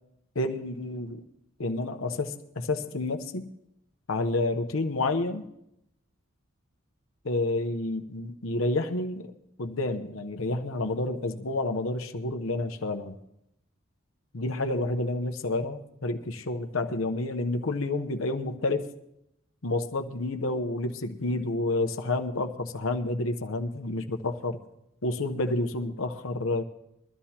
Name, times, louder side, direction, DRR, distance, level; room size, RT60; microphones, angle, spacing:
voice 1, 0.3-1.2 1.6-3.5 4.1-5.5 7.2-9.3 9.6-13.2 14.3-18.9 19.6-24.6 25.0-26.6, left 2 dB, 75° left, 6 dB, 0.9 m, -29 dB
22.5 x 13.0 x 2.9 m, 0.81 s
head